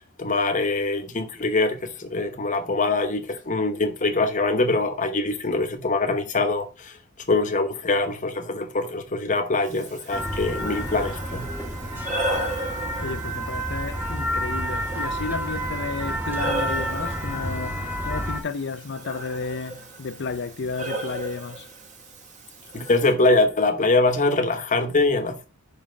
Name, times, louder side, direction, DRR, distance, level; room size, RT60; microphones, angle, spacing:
voice 1, 0.2-7.0 7.3-11.4 22.7-25.5, left 2 dB, 35° left, 1.0 m, -23 dB
Breathing, 9.7-23.1, right 1 dB, 35° right, 1.5 m, -36 dB
sound 1, 10.1-18.4, equal, 10° right, 1.3 m, -29 dB
voice 2, 13.0-21.7, left 4 dB, 50° left, 0.5 m, -32 dB
5.3 x 5.1 x 5.1 m
head